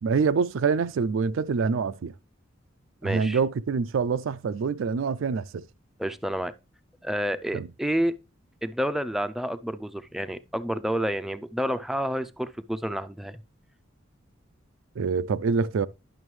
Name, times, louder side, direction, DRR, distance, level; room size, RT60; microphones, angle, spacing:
voice 1, 0.0-2.1 3.0-5.6 7.5-7.7 15.0-15.9, right 5 dB, 80° right, 0.4 m, -25 dB
voice 2, 3.0-3.4 6.0-6.5 7.0-8.1 8.6-13.4, equal, ahead, 0.4 m, -29 dB
11.0 x 6.0 x 3.2 m
head